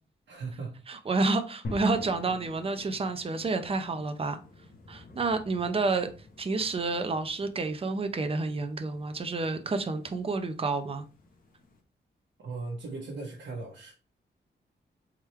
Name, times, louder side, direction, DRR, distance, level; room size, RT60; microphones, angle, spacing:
voice 1, 0.3-0.8 12.4-13.9, right 3 dB, 80° right, 1.1 m, -38 dB
voice 2, 0.9-4.4 4.9-6.1 6.4-11.0, right 3 dB, 30° right, 0.6 m, -29 dB
sound 1, 1.6-11.8, left 2 dB, 50° left, 1.0 m, -48 dB
3.6 x 3.2 x 4.2 m
wide cardioid pair, 145°, 18 cm